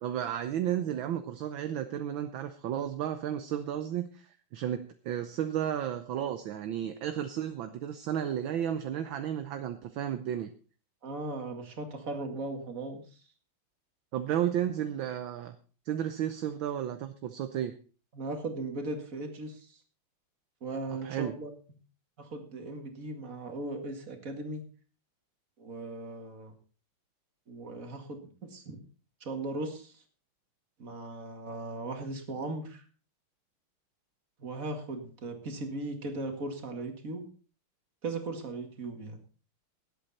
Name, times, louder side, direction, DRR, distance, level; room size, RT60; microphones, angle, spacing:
voice 1, 0.0-10.5 14.1-15.5 15.9-17.7 21.0-21.4, right 10 dB, 70° right, 9 dB, 1.5 m, -33 dB
voice 2, 11.0-13.0 18.1-19.8 20.6-21.5 22.2-24.6 25.6-26.5 27.5-28.8 29.2-29.9 30.8-32.8 34.4-37.3 38.0-39.2, right 2 dB, 40° right, 5 dB, 2.4 m, -38 dB
18.5 x 8.4 x 4.2 m, 0.38 s
omnidirectional pair, 2.4 m